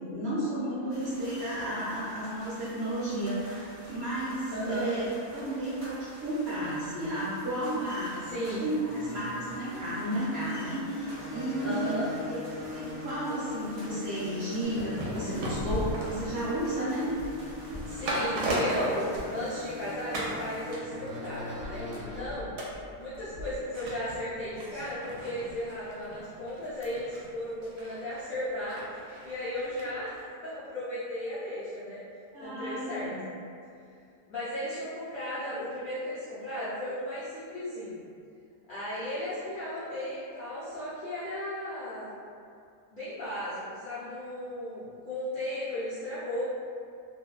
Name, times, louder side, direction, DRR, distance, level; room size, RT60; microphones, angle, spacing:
voice 1, 0.0-12.4 12.7-17.1 32.3-33.1, right 1 dB, 55° right, -11 dB, 0.8 m, -33 dB
sound 1, 0.9-20.7, equal, 20° right, 0.5 m, -49 dB
voice 2, 4.5-4.9 8.3-8.7 11.6-12.1 17.9-22.5 23.0-28.9 29.2-30.1 30.4-32.0 32.4-33.1 34.3-38.0 38.7-42.1 42.9-46.4, left 1 dB, 70° left, -13 dB, 0.5 m, -35 dB
sound 2, 8.2-22.2, left 2 dB, 40° right, 1.2 m, -42 dB
sound 3, 14.6-19.8 20.1-20.4 20.7-29.9 30.2-30.3, right 1 dB, 80° right, 1.1 m, -37 dB
2.7 x 2.1 x 2.3 m, 2.3 s
omnidirectional pair, 1.7 m